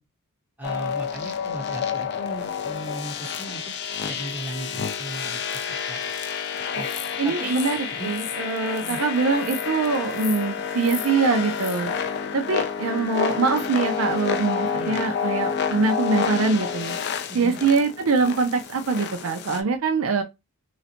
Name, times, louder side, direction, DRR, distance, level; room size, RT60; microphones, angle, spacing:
Electric Snaps Synth Drone, 0.6-19.6, left 7 dB, 50° left, 0.4 m, -29 dB
voice 1, 0.6-3.6 4.0-6.0 6.7-6.9 7.2-7.5 7.9-8.1 8.8-9.0 14.7-15.0 17.3-17.6, right 2 dB, 5° right, 0.9 m, -37 dB
voice 2, 7.2-7.8 8.0-11.9 12.3-17.0 17.3-20.2, right 4 dB, 65° right, 0.4 m, -23 dB
3.9 x 2.1 x 2.8 m
head